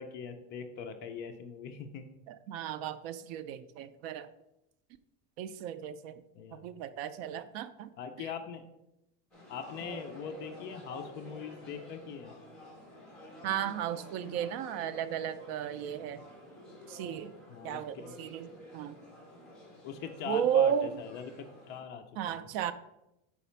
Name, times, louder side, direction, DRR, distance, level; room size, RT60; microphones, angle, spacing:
voice 1, 0.0-2.1 6.4-6.6 8.0-8.6 9.5-12.3 17.5-18.1 19.8-22.5, left 6 dB, 30° left, 7 dB, 0.4 m, -41 dB
voice 2, 2.3-4.3 5.4-6.2 6.5-7.9 8.2-8.3 13.4-16.2 16.9-17.3 17.6-19.0 20.3-21.0 22.2-22.7, right 9 dB, 60° right, 12 dB, 0.5 m, -34 dB
sound 1, 9.3-21.8, left 1 dB, ahead, 1.6 m, -51 dB
5.0 x 4.1 x 5.5 m, 0.88 s
cardioid pair, 170°, 36 cm